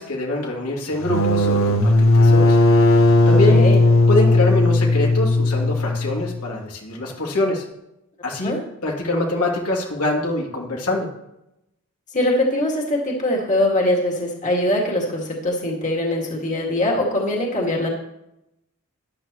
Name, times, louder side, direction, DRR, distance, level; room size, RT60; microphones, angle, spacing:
voice 1, 0.0-2.6 3.3-3.7 4.1-7.6 8.2-8.5 8.8-11.1, left 2 dB, 85° left, -1 dB, 2.6 m, -24 dB
sound 1, 0.9-6.5, left 2 dB, 65° left, 1.0 m, -16 dB
voice 2, 3.5-3.8 8.4-8.6 12.1-17.9, left 1 dB, 35° left, -1 dB, 2.1 m, -22 dB
13.5 x 11.0 x 3.0 m, 0.86 s
head